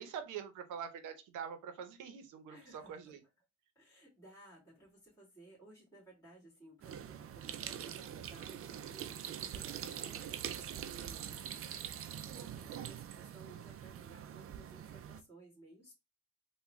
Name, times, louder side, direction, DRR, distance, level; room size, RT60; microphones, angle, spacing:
voice 1, 0.0-3.2 12.4-12.8, right 7 dB, 90° right, 0.7 m, -45 dB
voice 2, 2.5-3.2 3.8-15.9, right 2 dB, 10° left, 1.9 m, -58 dB
sound 1, 6.8-15.2, right 9 dB, 50° right, 0.4 m, -44 dB
3.5 x 2.2 x 3.0 m
cardioid pair, 90°, 30 cm